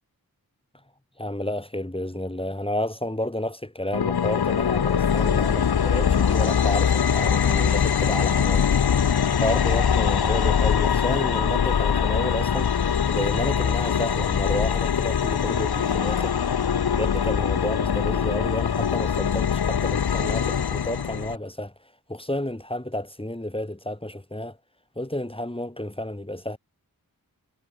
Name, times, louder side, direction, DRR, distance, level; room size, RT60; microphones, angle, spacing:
voice 1, 1.2-8.7 9.3-12.8 13.1-16.4 16.9-24.6 25.0-26.6, left 1 dB, 15° left, 6.6 m, -31 dB
sound 1, 3.9-21.4, left 7 dB, 90° left, 1.1 m, -22 dB
wide cardioid pair, 70°, 37 cm